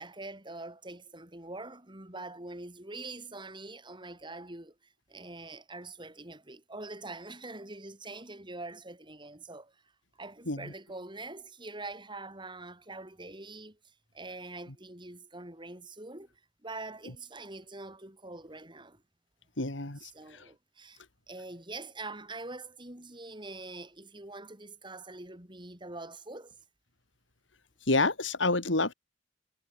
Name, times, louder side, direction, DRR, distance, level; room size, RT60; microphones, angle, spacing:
voice 1, 0.0-9.7 10.2-13.8 14.1-16.3 16.6-19.0 20.1-21.0 21.3-26.6, right 2 dB, 25° right, 5.8 m, -44 dB
voice 2, 19.6-20.1 27.9-28.9, left 2 dB, 80° left, 3.5 m, -28 dB
head